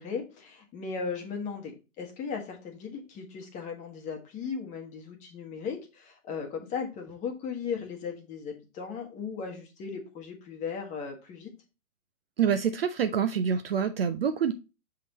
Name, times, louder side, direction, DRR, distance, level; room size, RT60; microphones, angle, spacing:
voice 1, 0.0-11.5, left 5 dB, 15° left, 3 dB, 1.1 m, -37 dB
voice 2, 12.4-14.5, right 7 dB, 45° right, 10 dB, 0.5 m, -26 dB
6.5 x 3.8 x 4.1 m, 0.30 s
hypercardioid pair, 135°, 43 cm